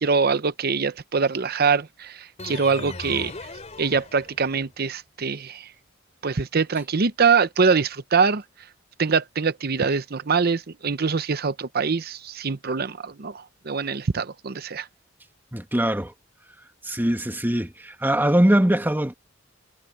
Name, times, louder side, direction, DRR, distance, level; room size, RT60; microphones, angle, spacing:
voice 1, 0.0-3.3 3.8-5.7 6.2-8.4 9.0-14.9, right 5 dB, 55° right, 0.8 m, -23 dB
sound 1, 2.4-4.7, left 3 dB, 35° left, 3.2 m, -38 dB
voice 2, 15.5-16.1 16.8-19.1, right 1 dB, 10° right, 1.7 m, -22 dB
head